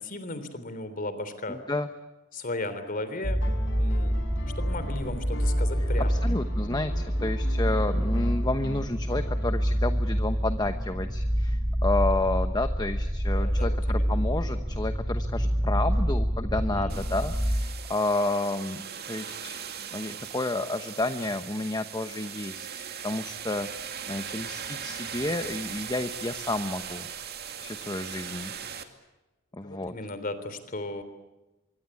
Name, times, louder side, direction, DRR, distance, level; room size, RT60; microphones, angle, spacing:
voice 1, 0.0-1.6 2.3-3.4 3.8-4.2 4.6-6.2 13.3-14.2 16.5-17.0 29.6-31.0, left 2 dB, 45° left, 11 dB, 3.4 m, -36 dB
voice 2, 1.5-1.9 6.1-19.6 19.9-27.1 27.6-28.5 29.5-29.9, left 2 dB, 20° left, 8 dB, 1.0 m, -31 dB
sound 1, 3.2-17.6, equal, 5° right, 3.3 m, -27 dB
sound 2, 3.4-9.8 11.3-11.4, left 2 dB, 65° left, 4.3 m, -43 dB
sound 3, 16.9-28.8, right 8 dB, 50° right, 2.4 m, -39 dB
24.5 x 24.0 x 8.5 m, 1.1 s
head